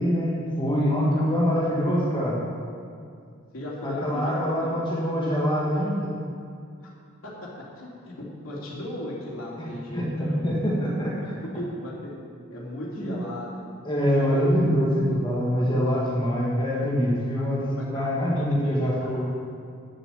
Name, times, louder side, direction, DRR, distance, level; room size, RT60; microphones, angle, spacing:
voice 1, 0.0-2.4 3.8-6.1 9.6-11.3 13.0-13.2 13.8-19.2, equal, 25° left, -5 dB, 1.6 m, -24 dB
voice 2, 0.8-1.3 3.5-4.7 6.8-6.9 7.2-10.5 11.0-12.2 12.5-13.6 14.2-14.6 17.2-17.5 17.7-19.2, left 1 dB, 85° left, -5 dB, 2.8 m, -37 dB
9.7 x 7.3 x 7.0 m, 2.3 s
head